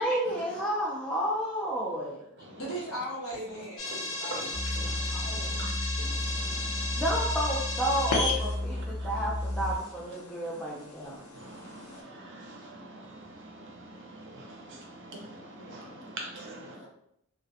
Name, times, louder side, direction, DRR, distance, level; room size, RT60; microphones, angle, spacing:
voice 1, 0.0-2.3 7.0-11.2, right 1 dB, 5° left, -6 dB, 0.3 m, -31 dB
voice 2, 2.6-4.4 5.1-5.6 5.9-6.0 15.5-15.8 16.8-16.9, equal, 65° left, -6 dB, 1.1 m, -39 dB
sound 1, 3.8-12.0, left 2 dB, 80° left, 0.6 m, -35 dB
voice 3, 3.9-5.7 6.0-7.0 8.7-9.2 11.0-16.9, right 2 dB, 55° right, 0 dB, 0.6 m, -45 dB
sound 2, 4.5-9.8, left 1 dB, 40° left, 0.7 m, -33 dB
2.3 x 2.1 x 2.6 m, 0.73 s
head